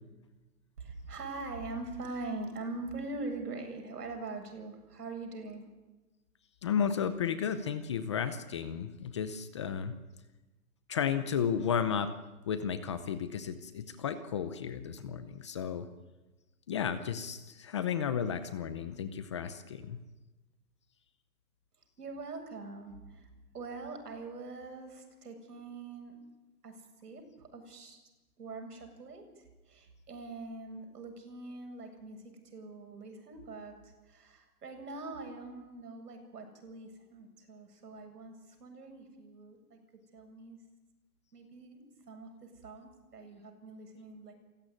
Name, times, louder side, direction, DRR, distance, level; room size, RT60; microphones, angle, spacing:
voice 1, 0.8-5.7 22.0-23.3 23.5-26.1 26.6-28.0 28.4-39.8 40.1-40.6 41.3-44.3, right 3 dB, 75° right, 5 dB, 7.9 m, -43 dB
voice 2, 6.6-10.0 10.9-12.1 12.5-15.9 16.7-20.0, left 7 dB, 20° left, 11 dB, 0.7 m, -33 dB
28.0 x 16.0 x 10.0 m, 1.1 s
hypercardioid pair, 160°, 47 cm